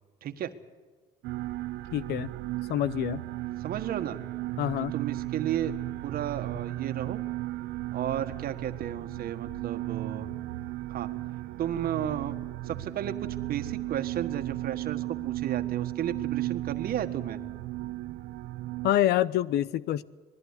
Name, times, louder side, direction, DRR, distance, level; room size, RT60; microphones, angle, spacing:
voice 1, 0.2-0.5 3.6-4.2 4.9-5.7 6.0-7.2 7.9-10.3 10.9-11.1 11.6-12.4 12.6-17.4, right 10 dB, 60° right, 1.6 m, -33 dB
sound 1, 1.2-18.9, right 16 dB, 85° right, 0.8 m, -35 dB
voice 2, 1.9-2.3 2.7-3.2 4.6-4.9 18.8-20.0, left 12 dB, 75° left, 0.8 m, -26 dB
20.5 x 14.5 x 9.7 m
cardioid pair, 110°, 17 cm